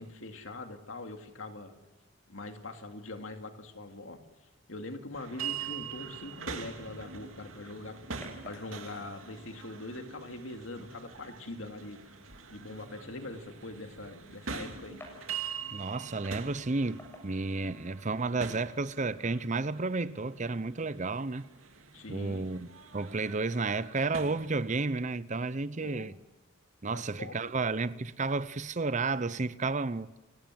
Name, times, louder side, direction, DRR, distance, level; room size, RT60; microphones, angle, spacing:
voice 1, 0.0-1.7 2.3-4.2 4.7-12.0 12.5-15.0 21.9-22.5 25.8-26.1 26.9-27.7, left 2 dB, 75° left, 2.6 m, -43 dB
sound 1, 5.1-24.8, right 6 dB, 90° right, 2.6 m, -44 dB
sound 2, 7.2-18.2, left 1 dB, 10° left, 7.1 m, -58 dB
voice 2, 15.7-21.4 22.1-26.1 26.8-30.1, right 3 dB, 35° right, 0.7 m, -32 dB
29.5 x 17.5 x 7.7 m
head